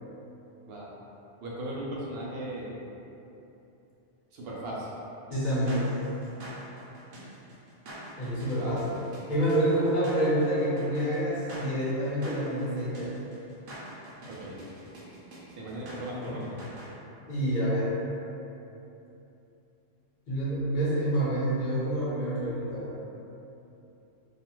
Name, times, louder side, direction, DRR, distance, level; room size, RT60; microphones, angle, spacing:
voice 1, 1.4-2.7 4.3-4.9 8.5-8.8 14.3-14.6 15.6-16.6, right 1 dB, 60° right, -5 dB, 0.7 m, -37 dB
voice 2, 5.3-5.9 8.2-9.0 9.3-13.1 16.2-16.3 17.3-17.9 20.3-23.0, right 1 dB, 45° left, -9 dB, 0.8 m, -27 dB
sound 1, 5.3-16.9, right 1 dB, 85° right, 1.0 m, -45 dB
2.4 x 2.4 x 2.9 m, 2.9 s
omnidirectional pair, 1.3 m